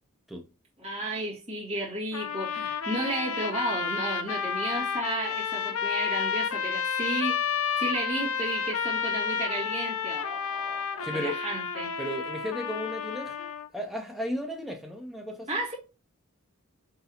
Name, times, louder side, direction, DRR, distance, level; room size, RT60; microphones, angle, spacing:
voice 1, 0.8-11.9 15.5-15.7, right 1 dB, 30° right, 1.7 m, -33 dB
sound 1, 2.1-13.7, left 6 dB, 75° left, 0.5 m, -31 dB
voice 2, 11.0-11.4 12.0-15.6, equal, ahead, 0.5 m, -35 dB
4.0 x 3.9 x 2.8 m
head